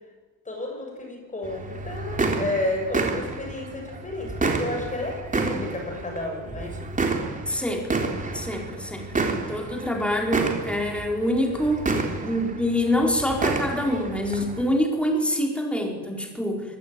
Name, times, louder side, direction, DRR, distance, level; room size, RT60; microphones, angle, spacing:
voice 1, 0.5-6.8, left 1 dB, 20° left, 2 dB, 7.6 m, -31 dB
sound 1, 1.4-14.6, right 3 dB, 20° right, 3.8 m, -30 dB
voice 2, 7.5-7.9 8.3-9.1 9.5-16.6, equal, 5° left, 1 dB, 4.5 m, -25 dB
25.0 x 19.5 x 9.3 m, 1.3 s
cardioid pair, 145°, 35 cm